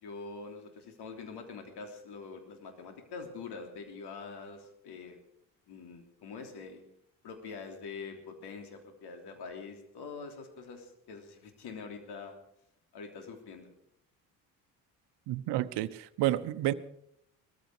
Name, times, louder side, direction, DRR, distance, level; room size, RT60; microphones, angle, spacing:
voice 1, 0.0-5.2 5.7-6.8 7.2-12.3 12.9-13.7, left 4 dB, 65° left, 5 dB, 3.3 m, -44 dB
voice 2, 15.3-16.7, right 14 dB, 65° right, 14 dB, 1.0 m, -30 dB
19.0 x 14.0 x 5.0 m, 0.74 s
hypercardioid pair, 50°, 43 cm